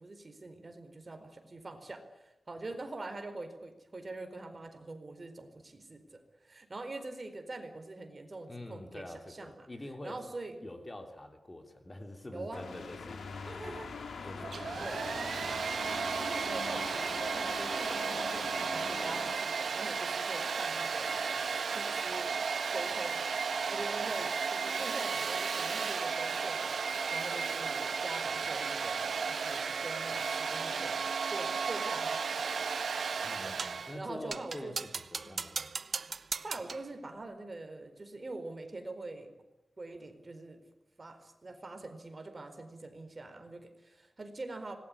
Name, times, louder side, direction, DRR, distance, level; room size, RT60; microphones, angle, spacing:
voice 1, 0.0-9.7 10.0-10.7 12.3-12.7 13.5-13.9 14.8-15.1 16.2-22.3 22.7-31.0 31.3-32.4 32.8-32.9 33.4-34.7 35.2-35.4 36.4-39.3 39.8-40.6 41.0-44.7, right 2 dB, 35° right, 7 dB, 4.4 m, -44 dB
voice 2, 8.5-10.2 10.6-13.2 13.5-13.8 14.2-15.6 33.2-35.7, left 1 dB, 25° left, 5 dB, 3.2 m, -46 dB
sound 1, 12.5-19.3, left 4 dB, 90° left, 3.5 m, -43 dB
Domestic sounds home sounds, 14.4-34.0, right 5 dB, 80° right, 1.9 m, -34 dB
sound 2, 33.6-33.9 34.3-36.9, right 4 dB, 55° right, 0.9 m, -38 dB
26.0 x 21.0 x 9.9 m, 0.93 s
wide cardioid pair, 115°, 0 cm